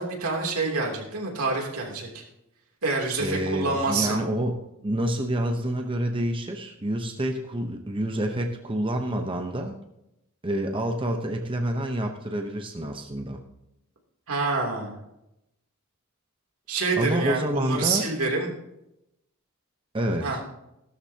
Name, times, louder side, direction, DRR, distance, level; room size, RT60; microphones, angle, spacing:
voice 1, 0.0-2.2 2.8-4.2 14.3-15.0 16.7-18.5 20.2-20.4, right 3 dB, 85° right, 0 dB, 3.1 m, -27 dB
voice 2, 3.2-9.7 10.4-13.4 17.0-18.1 19.9-20.4, right 1 dB, 25° right, 3 dB, 0.9 m, -28 dB
16.5 x 12.5 x 2.9 m, 0.85 s
head